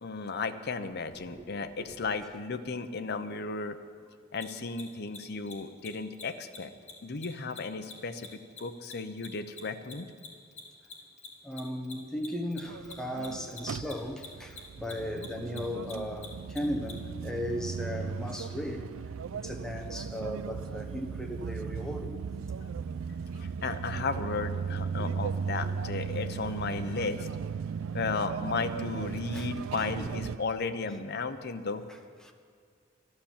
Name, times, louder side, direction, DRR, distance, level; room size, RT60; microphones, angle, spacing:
voice 1, 0.0-3.8 4.3-6.7 7.0-10.1 22.6-22.7 23.3-27.3 27.9-31.8, left 4 dB, 55° left, 0.8 m, -34 dB
Mechanisms, 4.3-4.4 4.7-4.8 5.1-5.2 5.4-5.5 5.8-5.9 6.1-6.2 6.5-6.6 6.9-9.6 9.8-16.9, left 5 dB, 35° left, 2.0 m, -45 dB
voice 2, 11.4-18.9 19.4-22.2 29.3-29.5 31.9-32.3, left 1 dB, 5° left, 1.1 m, -36 dB
sound 1, 12.7-30.4, right 6 dB, 85° right, 0.4 m, -37 dB
12.5 x 11.5 x 7.3 m
head